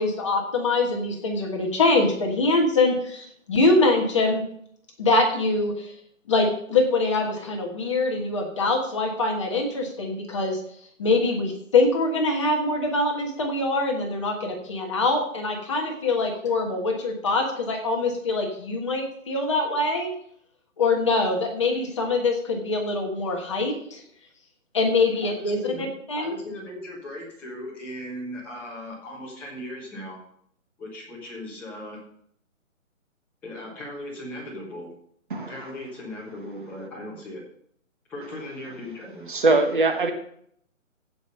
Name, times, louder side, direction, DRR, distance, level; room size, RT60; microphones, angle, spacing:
voice 1, 0.0-4.4 5.0-5.9 6.3-10.6 11.0-20.1 20.8-24.0 24.7-25.6 26.1-26.3, left 3 dB, 20° left, 1 dB, 1.3 m, -24 dB
voice 2, 25.2-25.9 26.1-30.2 30.8-32.0 33.4-34.9 35.4-37.4 38.1-39.3, left 1 dB, 5° left, -7 dB, 1.3 m, -38 dB
voice 3, 39.3-40.1, right 3 dB, 40° right, 6 dB, 1.2 m, -21 dB
15.5 x 5.3 x 5.4 m, 0.67 s
hypercardioid pair, 170°, 41 cm